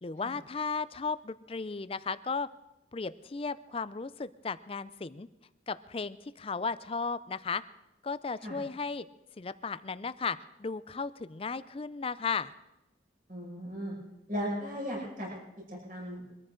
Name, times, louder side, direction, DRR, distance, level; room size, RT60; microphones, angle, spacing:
voice 1, 0.0-2.5 2.9-5.3 5.7-7.6 8.0-9.1 9.4-12.5, left 4 dB, 30° left, 15 dB, 0.4 m, -35 dB
voice 2, 13.3-13.9 14.3-15.3 15.7-16.3, equal, 45° right, -3 dB, 5.9 m, -36 dB
23.5 x 14.0 x 3.8 m, 0.99 s
head